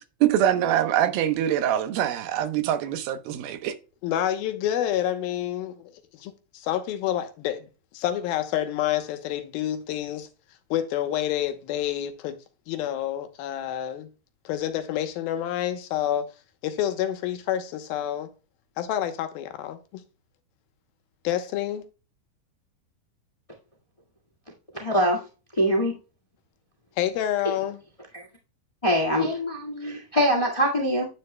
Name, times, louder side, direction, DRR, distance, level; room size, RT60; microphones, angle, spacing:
voice 1, 0.2-3.7, right 11 dB, 90° right, 2.8 m, -24 dB
voice 2, 4.0-7.7 7.9-10.3 10.7-12.4 12.7-14.1 14.5-16.3 16.6-18.3 18.8-20.0 21.2-21.9 27.0-27.8, left 11 dB, 90° left, 2.8 m, -28 dB
voice 3, 24.7-25.2 25.6-25.9 28.1-28.2 28.8-31.1, equal, 35° left, 0.5 m, -23 dB
10.0 x 9.6 x 2.2 m
omnidirectional pair, 4.1 m